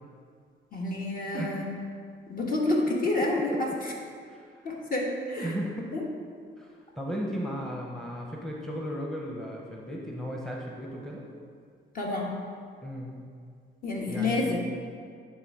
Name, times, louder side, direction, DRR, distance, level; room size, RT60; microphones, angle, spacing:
voice 1, 0.7-1.7 2.3-3.9 4.6-5.5 5.9-6.0 11.9-12.3 13.8-14.6, left 2 dB, 45° left, -2 dB, 1.5 m, -28 dB
voice 2, 1.3-1.7 3.5-3.6 4.3-4.6 5.4-5.9 6.6-11.3 12.8-13.1 14.1-14.5, equal, ahead, -2 dB, 0.8 m, -35 dB
9.5 x 3.5 x 4.8 m, 2.2 s
cardioid pair, 90°, 20 cm